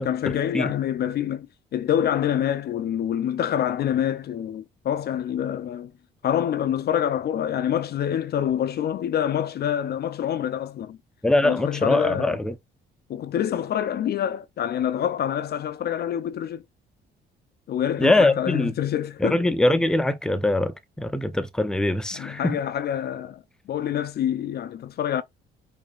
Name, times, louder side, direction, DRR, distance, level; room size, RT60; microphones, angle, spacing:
voice 1, 0.0-1.5 1.7-5.9 6.2-11.0 11.4-12.4 13.1-16.6 17.7-19.4 22.1-23.4 23.7-25.2, left 10 dB, 55° left, 0.4 m, -26 dB
voice 2, 11.2-12.5 18.0-18.7 19.2-22.6, left 2 dB, 5° left, 0.5 m, -22 dB
4.8 x 2.7 x 2.3 m
cardioid pair, 90°, 20 cm